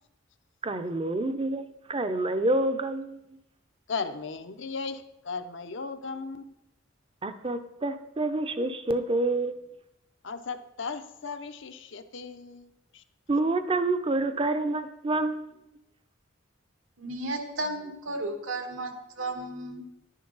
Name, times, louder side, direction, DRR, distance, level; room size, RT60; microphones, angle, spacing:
voice 1, 0.6-3.2 7.2-9.6 13.3-15.5, right 2 dB, 25° right, 0.6 m, -28 dB
voice 2, 3.9-6.5 10.2-13.0, left 4 dB, 65° left, 0.7 m, -36 dB
voice 3, 17.0-19.8, right 2 dB, 80° right, 1.6 m, -34 dB
11.0 x 10.0 x 4.0 m
head